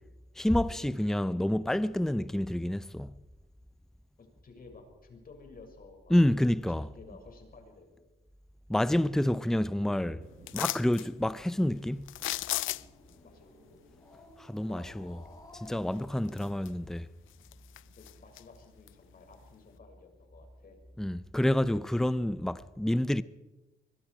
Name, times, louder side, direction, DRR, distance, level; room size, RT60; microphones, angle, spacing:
voice 1, 0.4-3.1 6.1-6.9 8.7-10.2 10.5-12.1 14.4-15.2 15.5-17.1 21.0-23.2, left 1 dB, ahead, 0.7 m, -28 dB
voice 2, 4.2-6.2 6.7-8.2 13.2-13.5 14.7-15.4 18.0-20.8 21.7-21.8 22.9-23.1, left 4 dB, 45° left, 6.8 m, -54 dB
sound 1, 7.0-8.0 8.2-8.3 8.7-10.8, right 5 dB, 65° right, 6.1 m, -59 dB
sound 2, 10.5-11.1 12.1-13.1 15.6-15.7 16.2-16.9 17.3-18.4 18.9-19.0, left 16 dB, 80° left, 0.6 m, -35 dB
Growling, 12.0-17.2, left 1 dB, 20° left, 6.0 m, -56 dB
24.5 x 23.0 x 5.0 m
cardioid pair, 90°, 20 cm